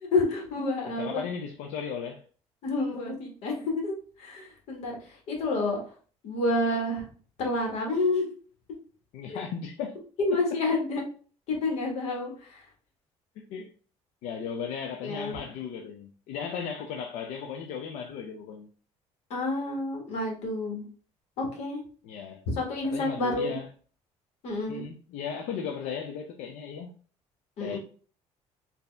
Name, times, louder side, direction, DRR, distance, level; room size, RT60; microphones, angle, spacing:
voice 1, 0.1-1.2 2.6-3.9 4.2-4.9 5.3-5.8 6.2-7.0 7.4-8.3 9.3-9.4 10.2-11.0 11.5-12.6 15.0-15.4 19.3-20.8 21.4-21.8 22.5-23.5 24.4-24.8 27.6-27.8, left 2 dB, 65° left, 1.5 m, -29 dB
voice 2, 0.9-2.2 9.1-10.0 10.3-10.4 13.4-13.7 14.2-18.7 22.0-22.4 22.8-23.7 24.7-26.9 27.6-27.8, left 7 dB, 85° left, 0.5 m, -36 dB
4.2 x 2.7 x 3.3 m
cardioid pair, 145°, 11 cm